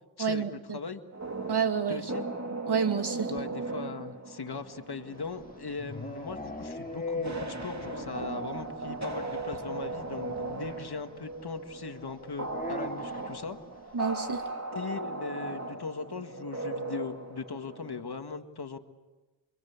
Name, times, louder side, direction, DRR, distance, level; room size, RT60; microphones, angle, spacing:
voice 1, 0.2-0.8 1.5-2.0 2.7-3.3 13.9-14.4, right 6 dB, 60° right, 6 dB, 2.6 m, -29 dB
sound 1, 1.1-18.0, right 2 dB, 35° right, 2.7 m, -38 dB
voice 2, 1.9-2.3 3.3-13.6 14.7-18.8, left 4 dB, 55° left, 7 dB, 1.9 m, -39 dB
sound 2, 5.2-8.3 8.5-8.6 8.9-9.0 9.3-9.4 10.7-10.8 12.5-13.3, left 2 dB, 20° left, 2.6 m, -38 dB
29.5 x 24.5 x 8.3 m, 1.2 s
wide cardioid pair, 75°, 46 cm